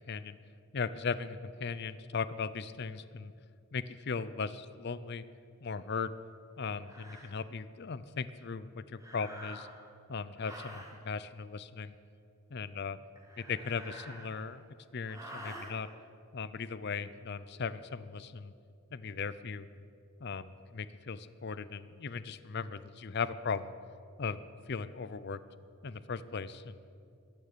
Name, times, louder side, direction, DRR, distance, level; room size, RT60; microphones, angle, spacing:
voice 1, 0.1-0.4 0.7-3.3 3.7-5.2 5.6-6.1 6.6-9.7 10.1-11.9 12.5-13.0 13.5-14.6 14.9-15.9 16.3-18.5 18.9-19.7 20.2-23.7 24.2-24.4 24.7-25.4 25.8-26.8, left 5 dB, 50° left, 15 dB, 0.6 m, -38 dB
sound 1, 5.9-6.1 6.8-7.3 9.0-9.9 10.4-11.0 13.2-14.6 15.0-15.7, right 1 dB, 15° right, 1.6 m, -48 dB
22.5 x 9.2 x 6.9 m, 2.4 s
head